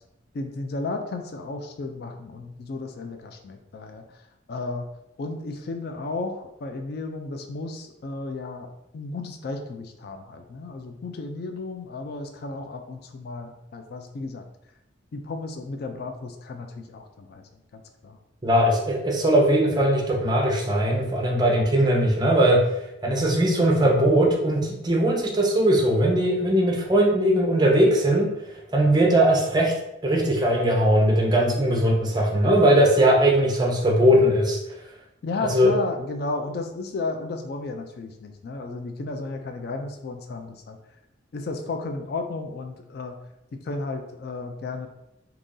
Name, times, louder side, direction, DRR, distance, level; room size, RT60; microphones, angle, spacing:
voice 1, 0.3-4.2 4.5-4.9 5.2-14.5 15.1-18.2 35.2-40.8 41.3-43.2 43.5-44.9, left 3 dB, 50° left, 5 dB, 0.3 m, -33 dB
voice 2, 18.4-22.6 23.0-28.3 28.7-29.7 30.0-34.6 35.5-35.7, right 1 dB, 20° right, 0 dB, 0.6 m, -20 dB
2.9 x 2.6 x 3.7 m, 0.87 s
head